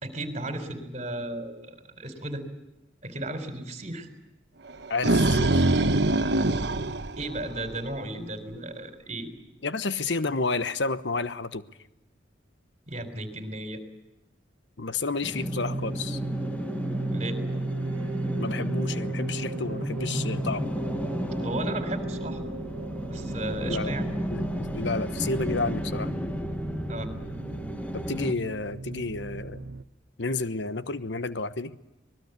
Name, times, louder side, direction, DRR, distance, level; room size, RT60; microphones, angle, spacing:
voice 1, 0.0-2.4 3.0-4.1 7.2-9.3 12.9-13.8 17.1-17.4 21.4-22.4 23.1-24.1 26.9-27.1, right 1 dB, 35° right, 8 dB, 4.1 m, -34 dB
sound 1, 4.7-7.9, right 2 dB, 60° right, 1.2 m, -23 dB
voice 2, 4.9-5.6 9.6-11.6 14.8-16.2 18.4-20.7 23.7-24.0 24.3-26.1 27.9-29.6 30.2-31.8, left 3 dB, 70° left, 13 dB, 1.1 m, -31 dB
sound 2, 15.2-28.3, equal, 10° left, 1.4 m, -33 dB
sound 3, 15.3-29.8, right 2 dB, 90° right, 0.9 m, -35 dB
25.5 x 20.5 x 8.2 m, 0.96 s
head